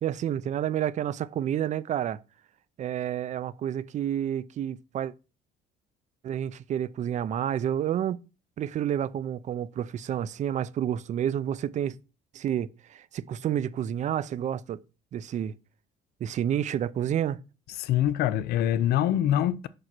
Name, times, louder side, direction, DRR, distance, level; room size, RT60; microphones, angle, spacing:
voice 1, 0.0-2.2 2.8-5.1 6.2-8.2 8.6-12.0 12.3-14.8 15.1-15.5 16.2-17.4, right 10 dB, 45° right, 0.5 m, -29 dB
voice 2, 17.8-19.7, left 11 dB, 75° left, 0.5 m, -24 dB
5.4 x 4.9 x 6.0 m
cardioid pair, 110°, 17 cm